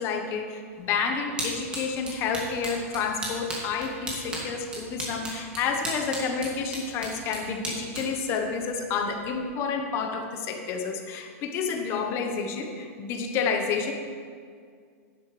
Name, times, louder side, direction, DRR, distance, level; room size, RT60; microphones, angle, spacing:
voice 1, 0.0-13.9, left 5 dB, 30° left, 4 dB, 1.1 m, -29 dB
sound 1, 0.7-9.4, right 1 dB, 10° right, 2.3 m, -38 dB
12.5 x 10.5 x 3.3 m, 2.1 s
supercardioid pair, 155°, 8 cm